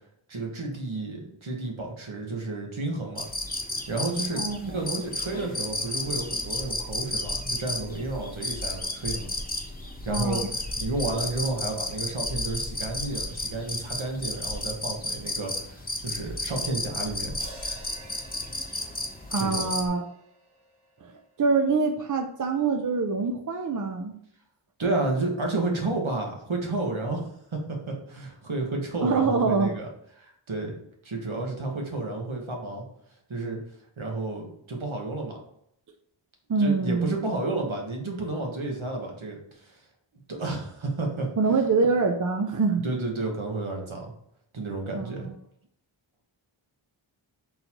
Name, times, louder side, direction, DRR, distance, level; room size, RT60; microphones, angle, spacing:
voice 1, 0.3-3.2 3.9-9.3 10.0-10.4 10.7-17.4 19.3-19.6 24.8-29.9 30.2-30.8 31.0-32.9 33.3-33.6 34.0-35.4 36.6-39.8 40.3-41.3 42.8-44.1 44.5-45.3, right 2 dB, 70° right, 1 dB, 1.2 m, -31 dB
sound 1, 3.2-19.9, left 2 dB, 20° left, 0.7 m, -33 dB
voice 2, 4.3-4.8 10.1-10.5 19.3-20.0 21.0-24.2 29.0-29.7 36.5-37.1 41.4-42.9 44.9-45.3, right 4 dB, 40° right, 6 dB, 0.4 m, -25 dB
sound 2, 17.4-21.7, right 1 dB, 85° right, 1.1 m, -50 dB
3.9 x 2.7 x 4.4 m, 0.71 s
wide cardioid pair, 55°, 50 cm